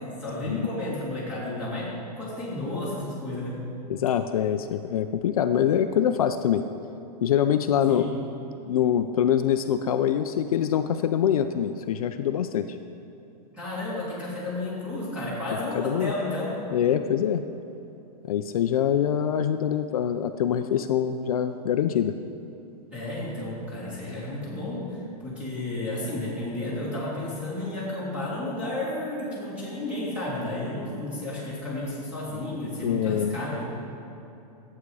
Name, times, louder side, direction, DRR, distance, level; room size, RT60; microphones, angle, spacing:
voice 1, 0.2-1.9 2.1-3.5 7.9-8.1 13.5-16.5 22.9-33.6, left 1 dB, 5° right, -9 dB, 2.4 m, -32 dB
voice 2, 3.9-6.6 7.2-8.1 8.7-12.8 15.7-16.1 16.7-17.4 18.3-22.2 32.8-33.4, left 9 dB, 60° left, 8 dB, 0.5 m, -24 dB
11.5 x 8.5 x 4.8 m, 3.0 s
supercardioid pair, 180°, 21 cm